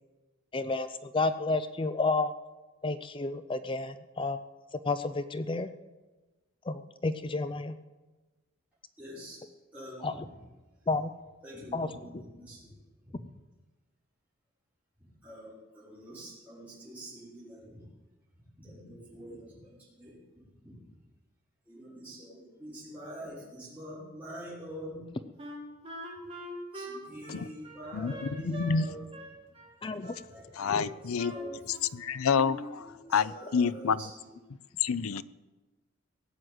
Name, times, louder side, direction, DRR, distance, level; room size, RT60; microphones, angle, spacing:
voice 1, 0.5-2.3 2.8-4.4 4.8-5.7 6.7-7.8 10.0-10.2 10.9-11.1 11.7-11.9 29.8-30.1, left 3 dB, 25° left, 11 dB, 0.5 m, -31 dB
voice 2, 9.0-9.4 9.7-10.2 11.4-12.7 13.0-13.2 15.0-17.8 18.5-20.2 20.6-20.7 21.7-25.1 26.7-29.0 30.3-31.9 32.5-34.3, equal, 5° right, -10 dB, 5.9 m, -46 dB
Wind instrument woodwind instrument, 25.4-28.8 29.1-30.3 30.7-32.0 32.3-32.8, equal, 25° right, 2.6 m, -43 dB
voice 3, 27.9-28.9 30.6-31.3 31.9-34.0 34.8-35.2, left 5 dB, 85° left, 17 dB, 0.5 m, -28 dB
17.0 x 7.7 x 8.0 m, 1.2 s
head